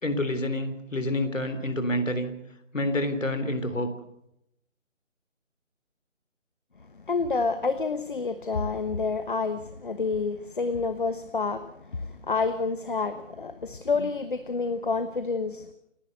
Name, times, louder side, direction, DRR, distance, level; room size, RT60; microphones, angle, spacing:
voice 1, 0.0-2.3 2.7-3.9, left 1 dB, 75° left, 10 dB, 3.8 m, -28 dB
voice 2, 7.1-15.6, left 4 dB, 40° left, 10 dB, 1.2 m, -28 dB
29.0 x 11.5 x 7.9 m, 0.79 s
figure-of-eight pair, 165°, 38 cm